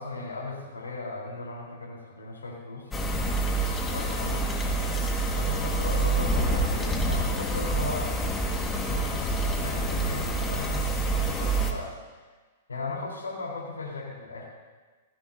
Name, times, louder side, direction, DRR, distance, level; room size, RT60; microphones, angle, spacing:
voice 1, 0.0-2.9 3.8-4.5 5.3-8.5 8.7-11.9 12.7-14.4, left 3 dB, 85° left, -3 dB, 4.1 m, -37 dB
sound 1, 2.9-11.7, right 2 dB, 15° left, 1.8 m, -27 dB
18.5 x 15.0 x 2.8 m, 1.3 s
hypercardioid pair, 110°, 0 cm